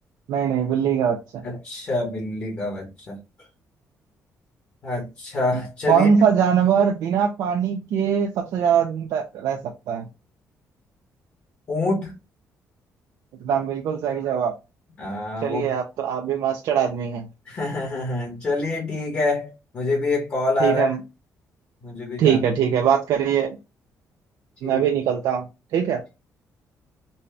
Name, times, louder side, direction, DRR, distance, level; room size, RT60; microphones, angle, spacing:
voice 1, 0.3-1.4 5.9-9.6 9.9-10.1 13.4-14.5 15.4-17.2 20.6-21.0 22.2-23.6 24.6-25.5 25.7-26.0, right 8 dB, 80° right, 0.6 m, -22 dB
voice 2, 1.4-3.2 4.8-6.1 11.7-12.2 15.0-15.7 17.5-21.0 21.8-22.4 24.6-24.8, left 2 dB, 35° left, 1.2 m, -26 dB
4.1 x 2.3 x 3.3 m
cardioid pair, 165°, 6 cm